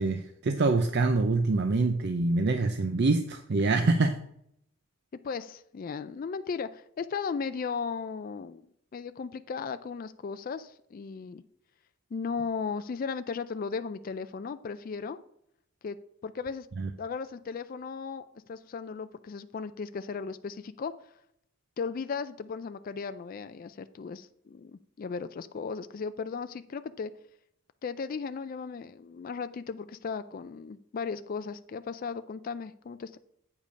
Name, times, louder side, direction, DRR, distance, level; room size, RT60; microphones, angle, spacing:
voice 1, 0.0-4.2 16.8-16.9, right 3 dB, 50° right, 8 dB, 0.5 m, -25 dB
voice 2, 5.2-8.7 8.9-11.4 12.1-15.2 15.8-16.0 16.2-16.7 17.0-20.9 21.8-27.1 27.8-33.2, left 5 dB, 40° left, 11 dB, 0.3 m, -36 dB
8.4 x 5.2 x 5.1 m, 0.74 s
head